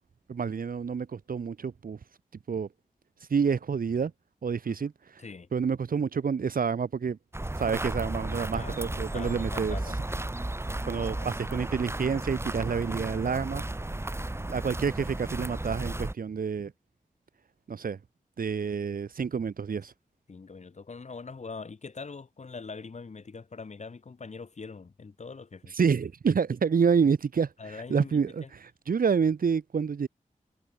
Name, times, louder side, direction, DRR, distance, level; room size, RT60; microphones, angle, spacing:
voice 1, 0.3-2.0 2.5-2.7 3.3-4.1 4.4-5.2 5.5-7.2 7.6-9.8 10.8-13.6 14.5-16.7 17.7-18.0 18.4-19.9 25.7-30.1, right 6 dB, 85° right, 3.0 m, -28 dB
sound 1, 7.3-16.1, right 1 dB, 15° right, 7.7 m, -34 dB
voice 2, 8.4-10.0 20.3-25.7 27.6-28.5, left 4 dB, 55° left, 7.6 m, -43 dB
wide cardioid pair, 130°, 14 cm